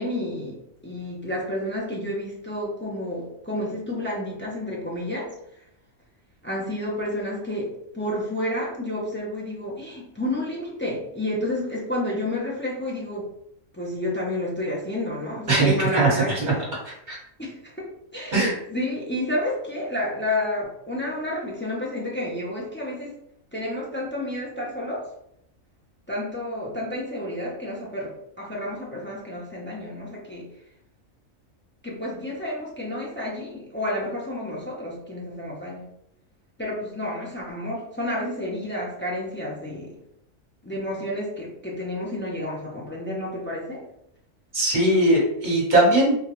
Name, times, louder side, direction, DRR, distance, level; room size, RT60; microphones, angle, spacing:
voice 1, 0.0-5.3 6.4-13.3 13.7-16.6 17.4-23.1 23.5-25.0 26.1-30.5 31.8-35.8 36.6-40.0 40.6-43.8, left 1 dB, 15° left, -5 dB, 0.4 m, -30 dB
voice 2, 15.5-16.2 17.1-17.2 18.3-18.5 44.5-46.2, right 1 dB, 35° right, -5 dB, 1.4 m, -19 dB
3.5 x 2.3 x 2.9 m, 0.77 s
omnidirectional pair, 1.4 m